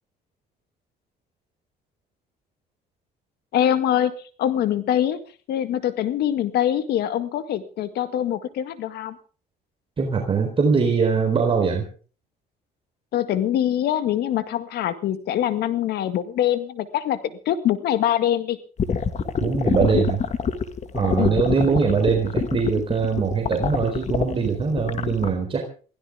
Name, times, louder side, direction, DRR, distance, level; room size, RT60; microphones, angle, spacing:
voice 1, 3.5-5.2 5.5-9.2 13.1-17.2 17.5-18.6 21.2-21.4, left 11 dB, 70° left, 11 dB, 1.9 m, -24 dB
voice 2, 10.0-11.9 19.4-20.2 20.9-25.6, right 5 dB, 30° right, 2 dB, 4.0 m, -22 dB
sound 1, 18.8-25.3, left 6 dB, 45° left, 1.9 m, -25 dB
23.0 x 16.5 x 3.6 m, 0.39 s
cardioid pair, 110°, 17 cm